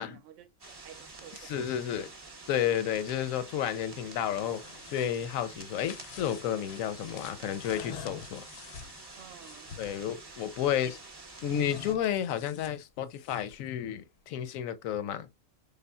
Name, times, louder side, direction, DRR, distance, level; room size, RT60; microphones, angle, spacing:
voice 1, 0.0-1.5 9.2-9.7 10.7-10.9, right 10 dB, 75° right, 0.9 m, -52 dB
sound 1, 0.6-11.9, right 3 dB, 25° right, 0.6 m, -48 dB
voice 2, 1.3-2.1 2.5-8.4 9.8-11.0 11.4-15.3, left 10 dB, 90° left, 1.0 m, -32 dB
sound 2, 4.4-10.0 11.4-13.7, left 8 dB, 65° left, 0.7 m, -47 dB
4.2 x 3.4 x 2.2 m
omnidirectional pair, 1.4 m